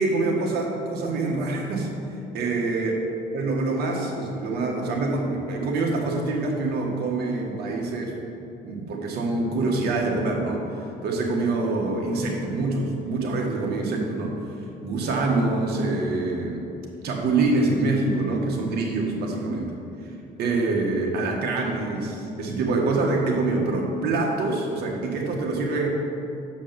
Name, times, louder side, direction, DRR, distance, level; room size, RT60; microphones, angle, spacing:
voice 1, 0.0-1.9 2.3-3.0 3.3-8.2 8.6-14.4 14.8-16.6 17.0-19.7 20.0-20.1 20.4-25.9, right 3 dB, 70° right, 0 dB, 1.7 m, -25 dB
7.7 x 5.2 x 7.0 m, 2.7 s
cardioid pair, 110°, 17 cm